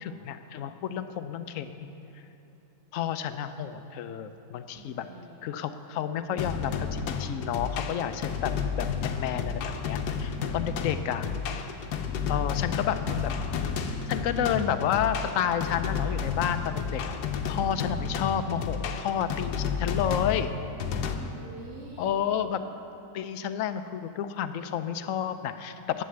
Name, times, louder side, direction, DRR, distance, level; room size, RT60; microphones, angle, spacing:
voice 1, 0.0-1.9 2.9-5.1 5.4-11.3 12.3-13.3 14.1-17.1 17.5-20.5 22.0-22.6 23.1-26.0, left 9 dB, 65° left, 10 dB, 0.9 m, -30 dB
voice 2, 4.7-5.4 12.1-12.6 21.2-22.3, right 4 dB, 80° right, -6 dB, 2.0 m, -46 dB
sound 1, 6.4-21.1, left 6 dB, 90° left, 1.3 m, -31 dB
11.5 x 8.6 x 7.7 m, 2.9 s
omnidirectional pair, 1.7 m